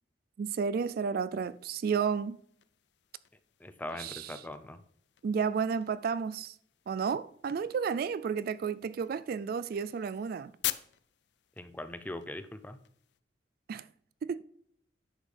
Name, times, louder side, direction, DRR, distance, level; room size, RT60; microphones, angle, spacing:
voice 1, 0.4-2.4 4.0-4.3 5.2-6.5 6.9-10.5 13.7-13.8 14.2-14.4, right 6 dB, 50° right, 0.3 m, -32 dB
sound 1, 1.4-13.2, left 14 dB, 65° left, 0.5 m, -46 dB
voice 2, 3.6-4.8 11.6-12.8, left 1 dB, 10° left, 0.5 m, -41 dB
10.0 x 7.2 x 3.4 m
head